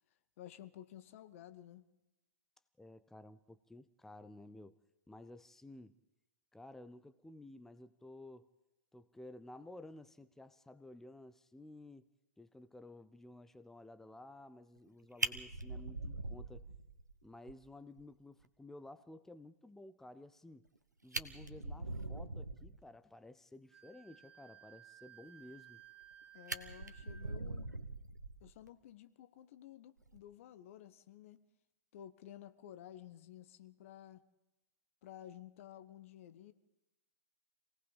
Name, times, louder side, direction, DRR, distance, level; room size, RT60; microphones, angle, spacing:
voice 1, 0.4-1.9 26.3-27.7 28.4-31.4 31.9-34.3 35.0-36.5, left 11 dB, 50° left, 1.1 m, -53 dB
voice 2, 2.8-4.8 5.1-6.0 6.5-8.5 8.9-12.1 12.4-16.7 17.2-20.6 21.0-25.8, left 2 dB, 5° left, 0.7 m, -54 dB
Fire, 14.8-14.9 15.2-17.1 17.5-17.6 18.0-18.1 18.4-18.5 20.6-20.7 21.0-22.8 25.6-26.1 26.5-28.7 30.0-30.2, right 2 dB, 85° right, 1.3 m, -42 dB
Wind instrument woodwind instrument, 23.7-27.4, right 10 dB, 85° left, 4.0 m, -58 dB
27.0 x 18.0 x 5.4 m
figure-of-eight pair, 105°, 9 cm